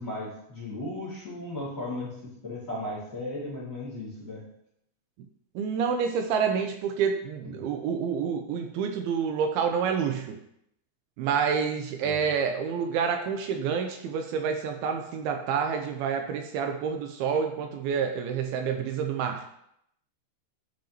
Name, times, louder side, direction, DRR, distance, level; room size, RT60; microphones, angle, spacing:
voice 1, 0.0-2.1 2.4-4.4 7.4-7.6 12.0-12.2, left 1 dB, 25° left, -7 dB, 2.2 m, -36 dB
voice 2, 5.6-10.4 11.2-19.4, right 6 dB, 85° right, 5 dB, 2.4 m, -28 dB
10.5 x 5.2 x 2.9 m, 0.75 s
omnidirectional pair, 4.5 m